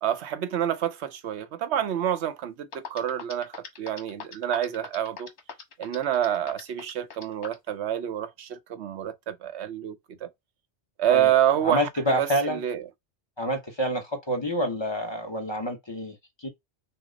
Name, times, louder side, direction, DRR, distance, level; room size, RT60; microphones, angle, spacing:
voice 1, 0.0-3.5 3.8-5.3 5.8-9.9 10.2-10.3 11.0-12.8, right 11 dB, 75° right, 1.0 m, -27 dB
sound 1, 2.4-2.5 2.7-7.7, left 5 dB, 85° left, 1.4 m, -39 dB
voice 2, 11.6-12.6 13.4-16.5, equal, 25° left, 0.9 m, -28 dB
5.7 x 2.1 x 3.9 m
omnidirectional pair, 1.1 m